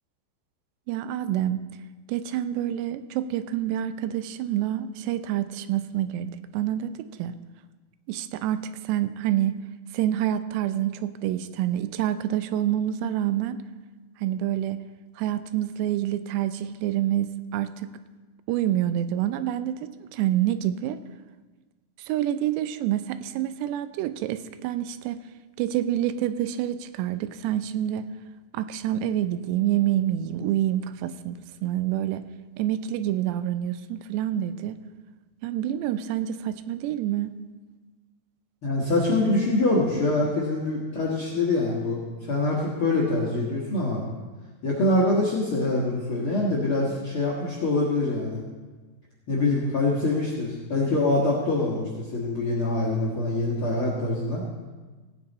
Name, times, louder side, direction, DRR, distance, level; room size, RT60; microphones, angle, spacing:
voice 1, 0.9-1.6 2.1-7.4 8.1-9.6 9.9-13.6 14.2-14.8 15.2-17.9 18.5-21.0 22.0-25.2 25.6-28.1 28.5-32.2 32.6-34.8 35.4-37.3, right 12 dB, 90° right, 12 dB, 2.7 m, -27 dB
voice 2, 38.6-42.0 42.3-44.0 44.6-48.4 49.3-51.8 52.1-54.4, left 2 dB, 60° left, -4 dB, 1.4 m, -24 dB
17.0 x 8.9 x 4.1 m, 1.3 s
omnidirectional pair, 4.8 m